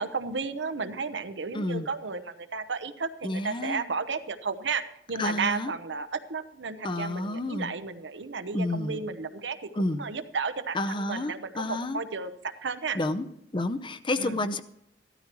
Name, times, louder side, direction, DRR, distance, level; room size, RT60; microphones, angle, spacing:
voice 1, 0.0-4.8 5.1-13.0 14.2-14.4, right 4 dB, 75° right, 9 dB, 0.9 m, -33 dB
voice 2, 1.5-1.9 3.2-3.8 5.2-5.7 6.8-7.7 8.5-9.0 9.8-10.0 10.7-12.0 12.9-13.3 13.5-14.6, left 2 dB, 25° left, 10 dB, 0.6 m, -30 dB
15.0 x 13.0 x 3.1 m, 0.77 s
head